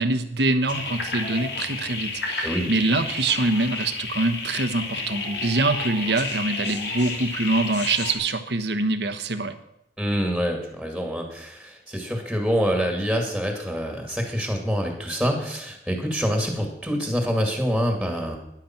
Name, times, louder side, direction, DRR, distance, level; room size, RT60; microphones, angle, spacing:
voice 1, 0.0-9.5, right 2 dB, 65° right, 10 dB, 1.3 m, -24 dB
sound 1, 0.7-8.1, left 3 dB, 75° left, 2.9 m, -31 dB
voice 2, 10.0-18.4, equal, ahead, 3 dB, 2.3 m, -26 dB
13.5 x 10.5 x 6.0 m, 0.81 s
head